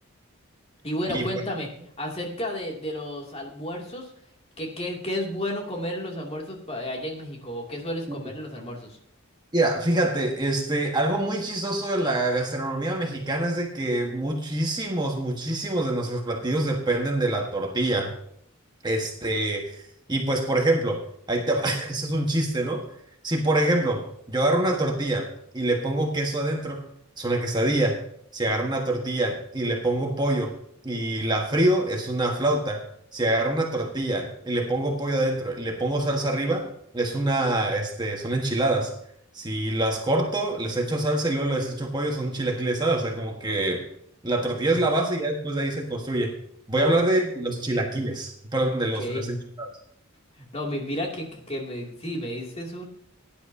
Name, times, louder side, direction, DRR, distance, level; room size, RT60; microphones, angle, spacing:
voice 1, 0.8-1.7 2.0-4.1 4.6-9.0 44.7-44.8 46.7-46.9 48.6-49.3 50.4-52.9, left 1 dB, 30° left, 0 dB, 2.7 m, -32 dB
voice 2, 9.5-18.1 18.8-19.8 20.1-22.9 23.2-25.3 25.5-26.9 27.2-28.0 28.3-30.6 30.8-32.8 33.1-38.9 39.3-43.8 44.2-46.3 46.7-49.7, right 1 dB, 20° right, 1 dB, 1.5 m, -25 dB
18.0 x 10.5 x 2.8 m, 0.66 s
head